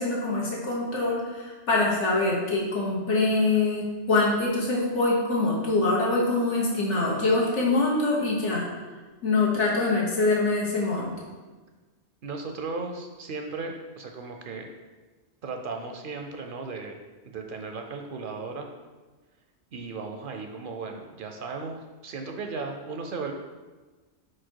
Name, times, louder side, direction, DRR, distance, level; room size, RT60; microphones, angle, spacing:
voice 1, 0.0-8.6 9.2-11.1, left 2 dB, 90° left, -4 dB, 1.6 m, -24 dB
voice 2, 12.2-14.7 15.4-17.0 17.2-18.7 19.7-23.3, right 4 dB, 60° right, 4 dB, 0.6 m, -36 dB
4.8 x 4.3 x 4.5 m, 1.3 s
omnidirectional pair, 1.2 m